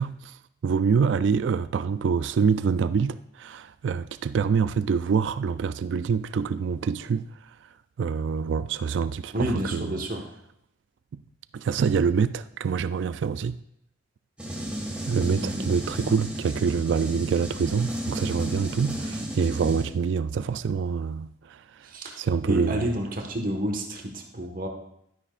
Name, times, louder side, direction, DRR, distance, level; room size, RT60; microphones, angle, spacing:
voice 1, 0.0-10.0 11.1-11.2 11.5-13.6 15.1-21.9 22.2-22.9, right 6 dB, 70° right, 0.3 m, -26 dB
voice 2, 9.3-10.2 15.4-15.7 21.8-24.7, equal, 45° right, 1.4 m, -30 dB
sound 1, 14.4-19.8, right 1 dB, 5° right, 1.8 m, -33 dB
11.5 x 9.8 x 2.5 m
head